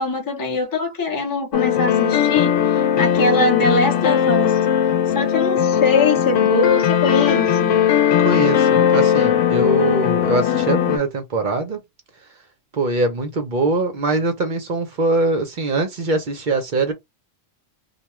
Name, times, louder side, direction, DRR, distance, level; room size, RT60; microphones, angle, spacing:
voice 1, 0.0-4.6 5.1-7.8, left 3 dB, 20° left, 0.6 m, -22 dB
sound 1, 1.5-11.0, left 9 dB, 85° left, 0.9 m, -18 dB
voice 2, 8.2-11.8 12.7-16.9, right 2 dB, 50° right, 0.7 m, -22 dB
2.3 x 2.3 x 3.0 m
omnidirectional pair, 1.2 m